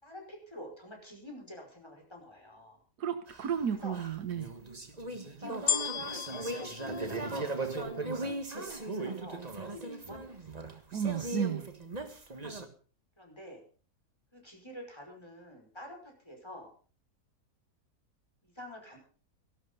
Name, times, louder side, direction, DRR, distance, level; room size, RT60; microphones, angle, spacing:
voice 1, 0.0-2.8 3.7-4.0 5.3-10.8 13.2-13.6 14.3-16.7 18.4-19.0, equal, 15° left, 1 dB, 5.4 m, -48 dB
voice 2, 3.0-4.5 10.9-11.7, right 8 dB, 85° right, 9 dB, 1.7 m, -33 dB
sound 1, 3.3-12.7, right 2 dB, 25° right, 1.6 m, -38 dB
sound 2, 5.7-8.1 8.7-8.8, left 8 dB, 55° left, 1.1 m, -35 dB
15.5 x 12.0 x 5.5 m, 0.40 s
omnidirectional pair, 1.7 m